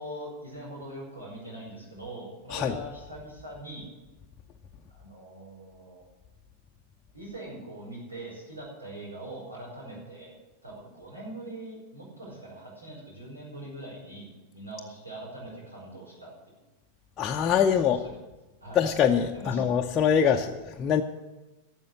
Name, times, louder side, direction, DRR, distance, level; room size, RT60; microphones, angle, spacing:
voice 1, 0.0-3.9 4.9-6.0 7.1-16.5 17.7-18.2 18.6-18.8 19.3-19.6, right 1 dB, 80° right, -3 dB, 5.7 m, -42 dB
voice 2, 17.2-18.0 18.7-21.0, left 8 dB, 25° left, 1 dB, 0.7 m, -24 dB
13.0 x 7.3 x 9.9 m, 1.1 s
figure-of-eight pair, 90°, 0 cm